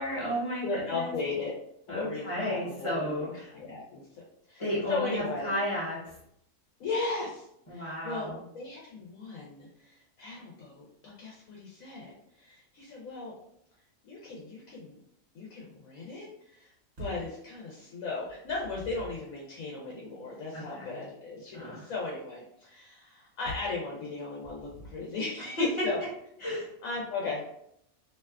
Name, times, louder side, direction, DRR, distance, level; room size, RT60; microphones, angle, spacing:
voice 1, 0.0-1.1 1.9-3.5 4.6-6.0 7.7-8.4 20.5-21.0 21.5-21.8 25.6-25.9 26.4-26.7, left 1 dB, 25° left, -7 dB, 0.9 m, -33 dB
voice 2, 0.6-1.5 1.9-4.0 4.5-4.6 4.9-5.5 6.8-7.4 7.7-13.3 14.0-15.0 15.3-16.7 17.0-26.0 26.8-27.4, left 3 dB, 90° left, -3 dB, 1.1 m, -36 dB
sound 1, 17.0-17.4 18.3-19.3 23.5-23.8 24.4-25.2, equal, 45° right, 1.2 m, -44 dB
2.8 x 2.2 x 2.3 m, 0.73 s
omnidirectional pair, 1.4 m